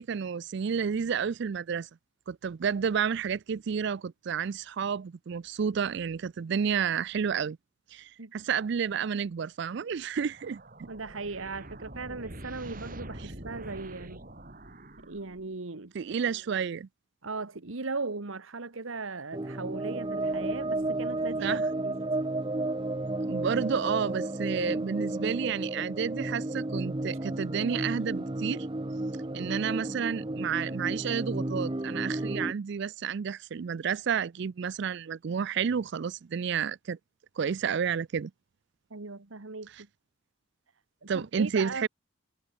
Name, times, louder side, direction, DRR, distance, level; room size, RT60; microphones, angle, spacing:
voice 1, 0.0-1.9 2.3-7.6 7.9-10.9 13.2-13.3 15.9-16.9 21.4-21.6 23.2-28.7 29.3-37.0 37.4-38.3 39.7-39.8 41.1-41.9, right 7 dB, 60° right, 0.4 m, -31 dB
sound 1, 10.2-15.6, right 1 dB, 40° right, 3.8 m, -45 dB
voice 2, 10.9-14.2 15.1-15.9 17.2-21.9 38.9-39.7 41.0-41.9, right 3 dB, 80° right, 1.4 m, -38 dB
sound 2, 19.3-32.5, right 2 dB, 25° right, 0.8 m, -32 dB
head